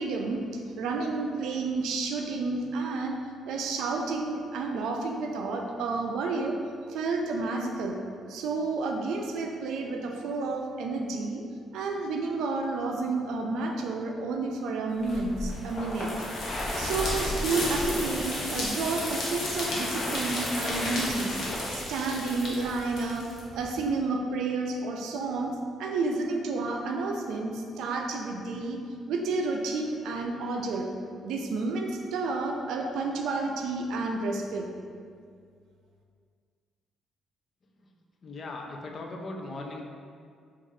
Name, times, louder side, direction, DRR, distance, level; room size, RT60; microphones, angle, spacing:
voice 1, 0.0-3.2 3.5-6.6 6.9-8.0 8.3-11.4 11.7-16.1 16.8-21.3 21.7-28.8 29.1-30.9 31.2-34.7, right 3 dB, 85° right, 2 dB, 0.3 m, -30 dB
sound 1, 15.0-23.9, left 1 dB, 65° left, 0.8 m, -32 dB
voice 2, 38.2-39.8, left 2 dB, 50° left, 1 dB, 0.4 m, -38 dB
2.6 x 2.4 x 3.2 m, 2.2 s
cardioid pair, 90°, 0 cm